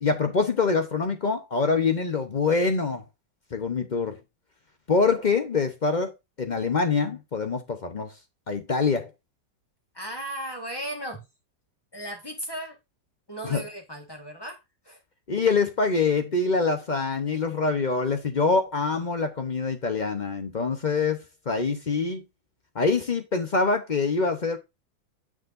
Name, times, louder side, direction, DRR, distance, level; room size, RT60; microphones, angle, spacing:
voice 1, 0.0-3.0 3.5-4.2 4.9-6.1 6.4-8.1 8.5-9.1 13.4-13.6 15.3-22.2 22.7-24.6, left 4 dB, 55° left, 0.5 m, -25 dB
voice 2, 9.9-11.2 11.9-12.8 13.3-14.6 14.8-15.0, right 1 dB, 15° left, 1.3 m, -36 dB
7.4 x 6.2 x 2.5 m
omnidirectional pair, 2.0 m